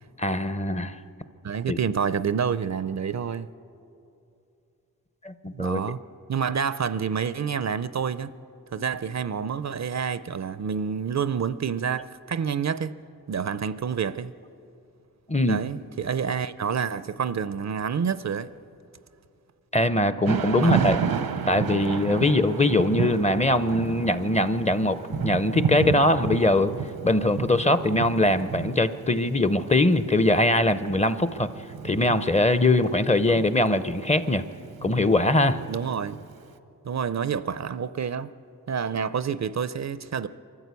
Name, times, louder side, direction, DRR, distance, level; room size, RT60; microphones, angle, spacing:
voice 1, 0.2-1.0 1.7-1.8 5.2-5.8 15.3-15.6 19.7-21.0 21.5-26.7 27.0-31.5 31.8-34.4 34.8-35.6, left 1 dB, 20° left, 0.5 m, -22 dB
voice 2, 1.4-3.5 5.5-6.0 6.3-8.3 8.7-12.9 13.3-14.3 15.5-18.5 20.6-20.7 22.1-22.3 33.3-33.5 35.7-36.2 36.8-38.3 38.7-40.3, right 7 dB, 50° right, 0.5 m, -28 dB
Thunder / Rain, 20.2-36.3, right 6 dB, 85° right, 0.8 m, -32 dB
23.5 x 14.0 x 8.2 m
wide cardioid pair, 115°, 35 cm